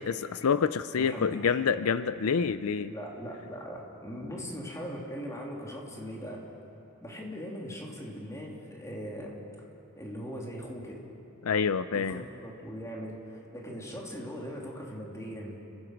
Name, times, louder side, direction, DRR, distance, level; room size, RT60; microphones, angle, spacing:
voice 1, 0.0-2.9 11.4-12.2, left 6 dB, 85° left, 13 dB, 0.5 m, -27 dB
voice 2, 1.0-1.6 2.9-6.5 7.0-9.7 9.9-11.0 11.9-15.6, equal, 15° left, -2 dB, 3.2 m, -40 dB
30.0 x 16.0 x 6.0 m, 2.8 s
head